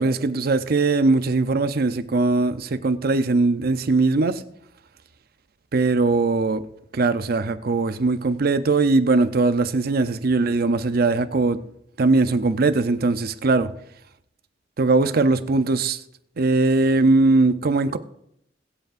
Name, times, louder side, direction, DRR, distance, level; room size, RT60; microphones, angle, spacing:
voice 1, 0.0-4.4 5.7-6.6 6.9-11.6 12.0-13.7 14.8-16.0 16.4-18.0, right 3 dB, 55° right, 0.6 m, -20 dB
21.5 x 7.9 x 2.5 m
head